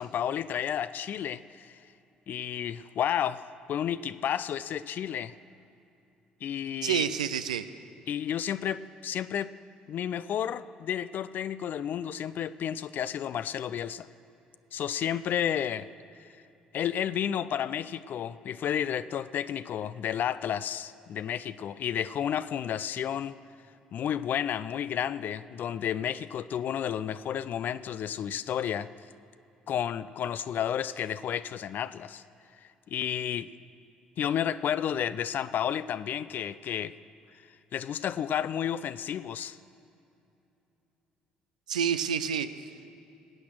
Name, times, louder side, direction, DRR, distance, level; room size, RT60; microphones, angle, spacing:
voice 1, 0.0-1.8 2.3-5.3 6.4-7.0 8.1-9.5 9.9-14.1 14.7-15.9 16.2-16.3 16.7-23.4 23.9-28.9 29.7-32.2 32.6-33.5 34.2-36.9 37.7-39.6, left 9 dB, 55° left, 15 dB, 0.4 m, -31 dB
voice 2, 6.8-7.6 41.7-42.5, right 8 dB, 85° right, 11 dB, 0.4 m, -28 dB
18.5 x 8.4 x 6.4 m, 2.7 s
hypercardioid pair, 50°, 4 cm